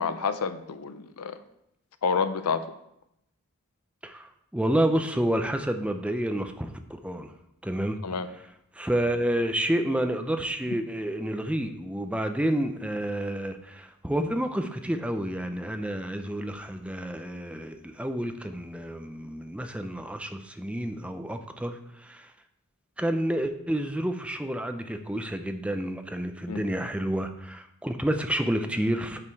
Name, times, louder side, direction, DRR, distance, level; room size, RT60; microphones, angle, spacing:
voice 1, 0.0-1.4 2.0-2.6 8.0-8.3 26.5-26.6, left 5 dB, 80° left, 12 dB, 0.6 m, -28 dB
voice 2, 4.0-7.3 7.6-8.0 8.7-22.3 23.0-29.2, right 1 dB, 5° right, 7 dB, 0.5 m, -29 dB
8.7 x 4.9 x 4.5 m, 0.80 s
head